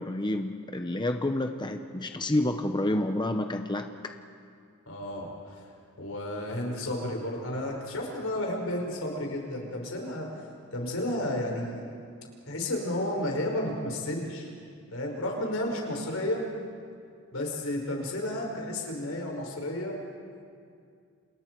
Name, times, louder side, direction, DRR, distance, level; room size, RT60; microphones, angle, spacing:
voice 1, 0.0-4.1, left 1 dB, 20° left, 6 dB, 0.8 m, -29 dB
voice 2, 4.9-5.6 6.0-10.3 10.7-11.8 12.5-14.5 14.9-16.5 17.3-20.0, left 1 dB, 80° left, 1 dB, 5.2 m, -32 dB
29.0 x 28.5 x 4.6 m, 2.3 s
head